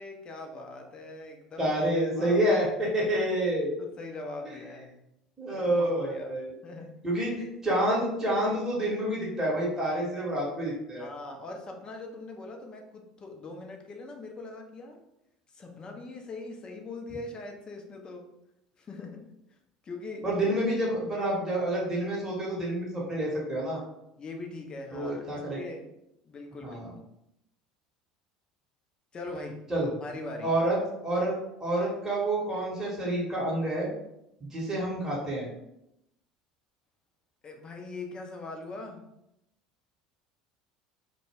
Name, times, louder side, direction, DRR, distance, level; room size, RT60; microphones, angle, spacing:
voice 1, 0.0-1.7 2.1-2.4 3.5-5.0 5.5-6.3 6.6-7.0 11.0-15.0 15.5-18.3 18.8-19.3 19.8-20.3 24.2-25.9 26.2-26.8 29.1-29.6 30.0-30.6 37.4-39.1, left 2 dB, 25° left, 3 dB, 0.5 m, -41 dB
voice 2, 1.6-3.8 5.4-6.5 7.0-11.1 20.2-23.8 24.9-25.6 26.6-26.9 29.7-29.9 30.4-31.3 31.6-33.9 34.4-35.5, right 1 dB, 10° right, -6 dB, 0.9 m, -28 dB
2.1 x 2.1 x 3.3 m, 0.84 s
figure-of-eight pair, 65°, 3 cm